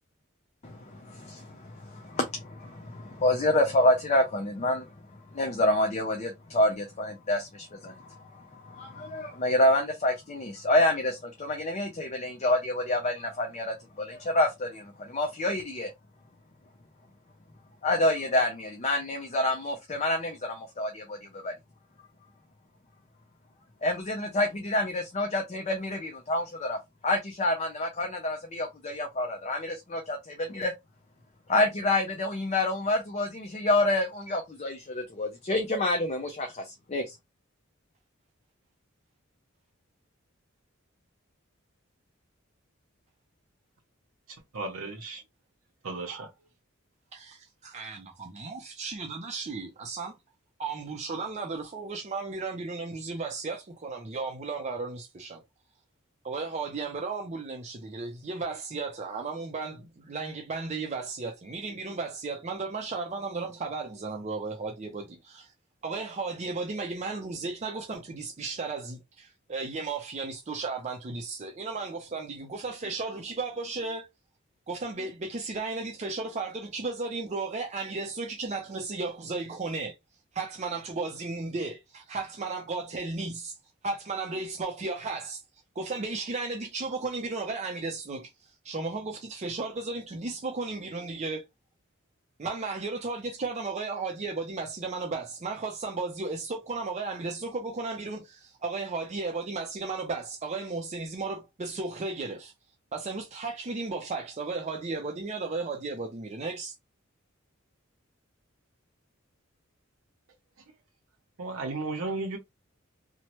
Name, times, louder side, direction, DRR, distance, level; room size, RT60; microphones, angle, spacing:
voice 1, 0.6-4.9 5.3-8.2 8.6-15.9 17.8-21.2 21.4-21.5 23.8-26.8 27.0-30.7 31.5-36.5 36.9-37.1, left 1 dB, 35° left, 0.5 m, -28 dB
voice 2, 44.5-45.2 45.8-46.3 111.4-112.4, right 3 dB, 90° right, 0.7 m, -34 dB
voice 3, 47.1-50.2 50.6-55.4 56.2-65.5 65.8-74.0 74.7-79.9 80.3-83.5 83.8-85.4 85.8-88.3 88.6-91.4 92.4-102.5 102.9-106.7, right 3 dB, 35° right, 0.5 m, -34 dB
3.0 x 2.1 x 2.9 m
head